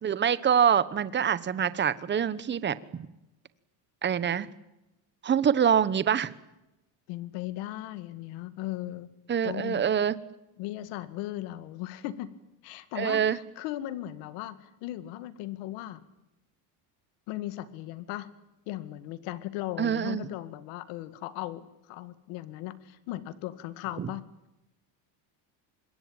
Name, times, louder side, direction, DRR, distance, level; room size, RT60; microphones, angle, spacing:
voice 1, 0.0-2.8 4.0-4.5 5.2-6.3 9.3-10.2 13.0-13.4 19.8-20.3 24.0-24.1, right 8 dB, 20° right, 16 dB, 1.0 m, -25 dB
voice 2, 7.1-9.1 9.4-9.8 10.6-12.3 12.6-16.0 17.3-18.3 18.7-24.2, left 15 dB, 80° left, 14 dB, 2.1 m, -37 dB
26.0 x 22.0 x 8.9 m, 0.93 s
cardioid pair, 145°, 48 cm